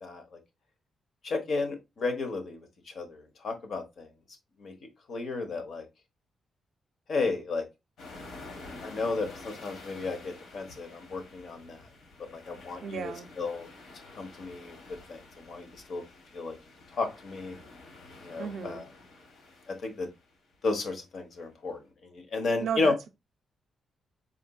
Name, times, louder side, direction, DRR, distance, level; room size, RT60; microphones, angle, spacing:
voice 1, 0.0-0.4 1.2-2.6 2.9-4.1 4.6-4.7 5.1-5.8 7.1-7.6 8.8-11.8 12.5-13.7 14.2-14.8 15.1-16.0 16.3-16.6 16.9-17.6 18.2-18.8 19.7-20.1 20.6-22.9, left 3 dB, 50° left, 1.0 m, -33 dB
sound 1, 8.0-20.6, left 3 dB, 75° left, 1.4 m, -49 dB
voice 2, 12.8-13.3 18.4-18.8 22.6-23.1, right 6 dB, 55° right, 0.5 m, -34 dB
4.3 x 3.9 x 2.3 m
wide cardioid pair, 180°, 0 cm